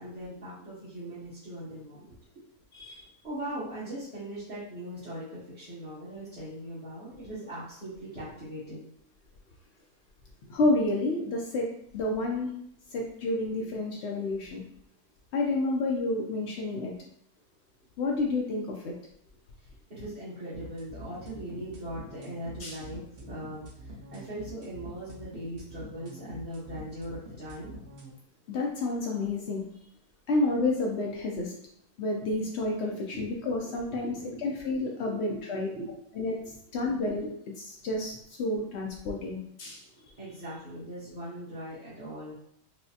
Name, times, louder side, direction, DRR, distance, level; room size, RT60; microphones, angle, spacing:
voice 1, 0.0-2.2 2.9-3.0 3.2-8.9 11.2-11.3 19.9-27.7 32.9-35.4 35.8-36.0 38.6-38.8 39.1-39.2 40.2-42.3, right 1 dB, 30° right, -12 dB, 1.0 m, -40 dB
voice 2, 10.5-11.7 11.9-12.5 12.9-14.6 15.3-16.9 18.0-18.9 22.6-22.8 28.5-29.7 30.3-31.5 32.0-34.1 34.4-35.7 36.2-36.4 36.7-37.3 37.6-39.8, left 2 dB, 85° left, -1 dB, 0.5 m, -29 dB
sound 1, 20.5-28.1, right 1 dB, 50° right, 0.7 m, -46 dB
4.6 x 2.0 x 2.7 m, 0.72 s
omnidirectional pair, 1.7 m